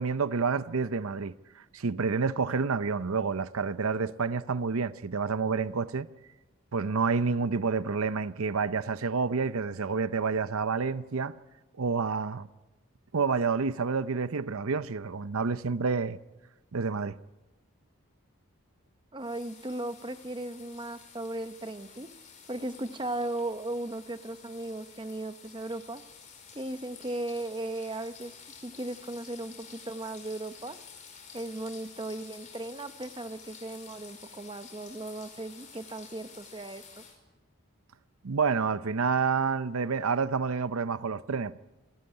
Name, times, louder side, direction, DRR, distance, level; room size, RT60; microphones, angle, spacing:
voice 1, 0.0-6.1 6.7-11.3 11.8-12.5 13.1-16.2 16.7-17.2 38.2-41.6, right 5 dB, 80° right, 0.7 m, -29 dB
voice 2, 19.1-22.1 22.5-26.0 26.5-28.3 28.6-30.8 31.3-37.0, right 2 dB, 20° right, 0.9 m, -37 dB
sound 1, 19.2-37.2, left 6 dB, 35° left, 5.0 m, -51 dB
27.5 x 13.5 x 9.8 m
head